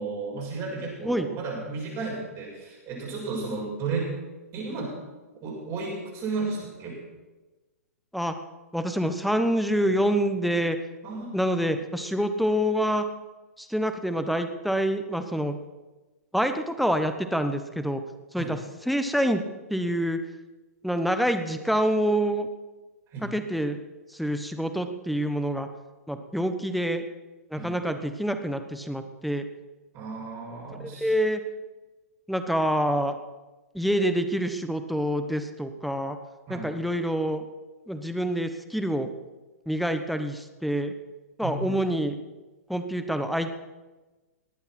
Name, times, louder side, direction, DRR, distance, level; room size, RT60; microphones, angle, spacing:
voice 1, 0.0-4.1 4.5-4.9 5.4-7.0 11.0-11.3 18.4-18.5 23.1-23.3 27.5-27.8 29.9-31.1 36.5-36.7 41.4-41.7, right 4 dB, 30° right, -3 dB, 6.7 m, -33 dB
voice 2, 8.7-10.8 11.3-13.0 13.6-15.6 16.3-18.0 18.3-19.4 19.7-20.2 20.8-22.5 23.2-23.8 24.1-25.7 26.1-27.0 27.5-29.4 30.8-31.4 32.3-33.1 33.7-36.2 36.5-37.4 37.9-39.1 39.7-40.9 41.4-42.2 42.7-43.5, equal, ahead, 8 dB, 1.2 m, -26 dB
19.5 x 8.9 x 6.1 m, 1.2 s
hypercardioid pair, 120°, 9 cm